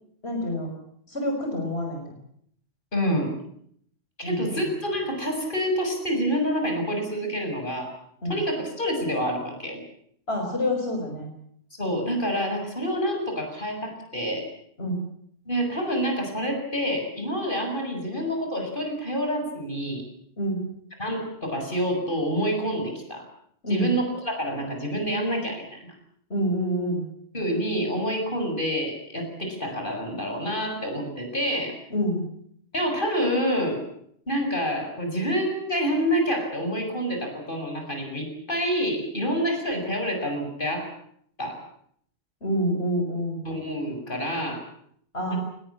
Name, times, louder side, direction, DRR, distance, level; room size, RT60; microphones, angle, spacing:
voice 1, 0.2-0.7 1.1-2.1 4.2-4.6 8.2-8.4 10.3-11.3 14.8-15.0 20.4-20.7 23.6-23.9 26.3-27.0 31.9-32.3 42.4-43.4 45.1-45.4, equal, 75° left, 2 dB, 5.8 m, -27 dB
voice 2, 2.9-3.3 4.2-7.9 8.3-9.8 11.8-14.5 15.5-20.0 21.0-23.3 23.7-25.9 27.3-31.8 32.7-33.8 34.3-40.9 41.4-41.6 43.4-44.7 45.3-45.4, equal, 55° left, 3 dB, 7.4 m, -27 dB
23.5 x 21.0 x 8.6 m, 0.67 s
omnidirectional pair, 1.1 m